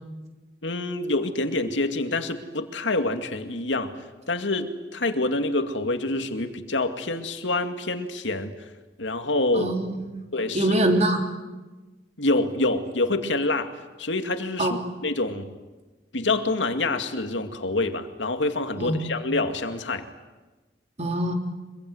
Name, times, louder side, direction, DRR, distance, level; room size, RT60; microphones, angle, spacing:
voice 1, 0.6-3.9 4.3-8.7 9.0-9.7 10.3-10.7 12.2-13.7 14.0-15.5 16.1-20.1, left 2 dB, 90° left, 7 dB, 2.2 m, -26 dB
voice 2, 9.5-10.2 10.5-11.2 14.6-14.8 18.8-19.0 21.0-21.3, right 1 dB, 40° right, 4 dB, 3.3 m, -23 dB
25.0 x 22.5 x 9.5 m, 1.2 s
head